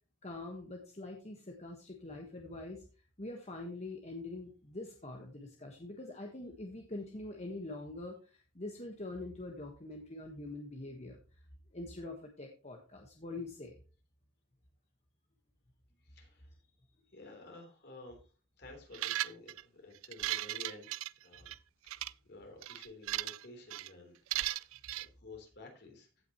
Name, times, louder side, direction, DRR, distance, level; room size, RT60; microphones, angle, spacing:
voice 1, 0.2-2.8 3.2-11.4 11.7-13.7, left 2 dB, 35° left, 2 dB, 1.4 m, -44 dB
voice 2, 16.0-18.3 18.6-21.5 21.8-26.1, left 2 dB, 55° left, 2 dB, 3.5 m, -53 dB
sound 1, 18.9-19.6 20.0-21.6 21.9-22.1 22.6-23.4 23.7-23.9 24.3-25.1, right 15 dB, 90° right, 0.4 m, -36 dB
16.0 x 6.1 x 3.0 m, 0.35 s
head